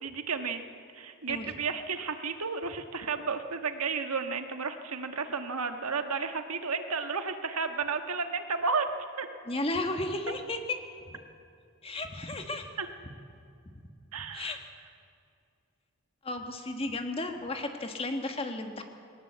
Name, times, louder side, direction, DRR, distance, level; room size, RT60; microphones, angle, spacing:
voice 1, 0.0-0.6 0.9-8.9 9.2-9.3 12.8-12.9 14.1-14.6, right 5 dB, 90° right, 7 dB, 1.5 m, -32 dB
voice 2, 9.5-10.8 11.8-12.7 14.3-14.6 16.2-18.8, left 2 dB, 25° left, 5 dB, 1.5 m, -33 dB
20.0 x 18.5 x 8.0 m, 2.4 s
head